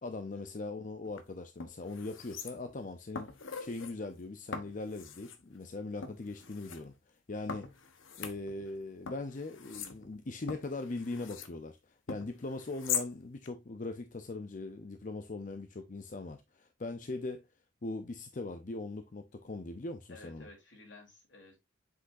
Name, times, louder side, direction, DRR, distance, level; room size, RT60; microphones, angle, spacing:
voice 1, 0.0-3.3 3.6-7.7 8.2-17.4 17.8-20.5, left 2 dB, 40° left, 0.6 m, -40 dB
sound 1, 1.0-1.2 1.6-2.8 3.1-3.9 4.5-5.4 6.0-6.8 7.5-8.8 9.1-11.5 12.1-13.1 13.4-13.5, left 7 dB, 85° left, 1.1 m, -41 dB
voice 2, 20.1-21.6, left 2 dB, 65° left, 3.3 m, -54 dB
7.7 x 6.2 x 2.6 m
head